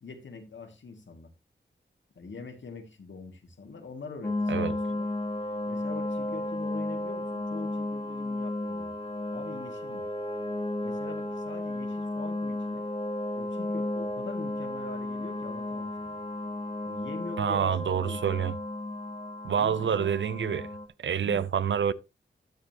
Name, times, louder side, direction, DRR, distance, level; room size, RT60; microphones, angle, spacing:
voice 1, 0.0-1.3 2.2-5.1 5.7-9.0 9.3-10.1 10.8-12.8 13.3-16.2 16.8-18.4 19.5-20.1 21.2-21.4, left 4 dB, 75° left, 2.2 m, -43 dB
sound 1, 4.2-20.9, left 1 dB, 30° left, 1.8 m, -33 dB
voice 2, 17.4-18.6 19.4-20.7 21.0-21.9, right 8 dB, 75° right, 0.5 m, -27 dB
12.5 x 7.2 x 2.9 m
wide cardioid pair, 75°, 19 cm